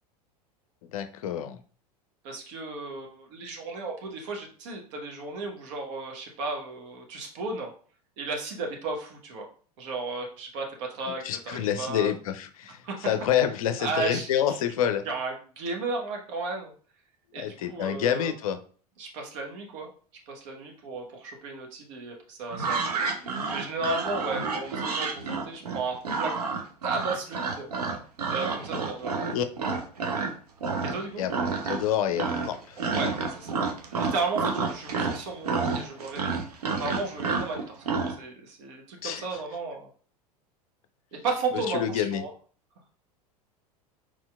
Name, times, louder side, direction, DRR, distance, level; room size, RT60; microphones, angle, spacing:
voice 1, 0.9-1.6 11.2-15.0 17.4-18.6 29.3-29.4 31.2-32.8 39.0-39.2 41.7-42.2, left 9 dB, 60° left, 9 dB, 0.5 m, -28 dB
voice 2, 2.2-7.7 8.2-9.5 9.8-12.1 12.8-13.0 13.8-14.6 15.0-16.7 17.3-18.3 19.0-19.9 20.3-22.9 23.5-26.4 26.8-27.7 28.3-29.1 30.8-31.2 32.8-33.5 33.9-36.3 36.8-37.8 38.2-39.9 41.1-42.3, right 3 dB, 55° right, 1 dB, 1.1 m, -34 dB
sound 1, 22.5-30.3 30.6-31.0 31.3-31.9 32.2-38.2, right 4 dB, 75° right, 0.7 m, -29 dB
4.4 x 4.3 x 2.3 m, 0.42 s
figure-of-eight pair, 80°, 20 cm